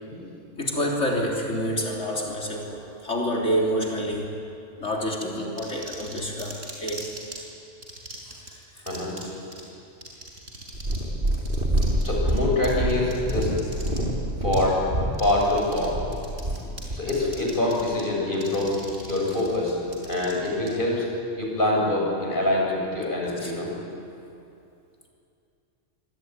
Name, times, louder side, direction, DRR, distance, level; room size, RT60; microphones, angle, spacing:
voice 1, 0.6-4.4 4.8-7.1 16.6-16.8 23.4-23.5, equal, 65° left, -1 dB, 3.9 m, -28 dB
sound 1, 5.6-7.4 7.8-8.5 8.9-9.2 9.5-9.6 10.0-11.0 11.3-14.0 14.5-14.6 15.1-16.8 17.1-18.0 18.3-20.7, right 2 dB, 85° right, 6.2 m, -40 dB
voice 2, 8.9-9.3 9.5-9.6 12.0-13.5 14.4-14.8 15.2-15.9 16.9-18.7 19.1-21.1 21.4-23.9, left 1 dB, 40° left, -2 dB, 7.7 m, -25 dB
Purr, 10.7-17.1 17.8-17.9, right 1 dB, 45° right, 3.4 m, -26 dB
25.5 x 24.0 x 9.6 m, 2.6 s
omnidirectional pair, 1.3 m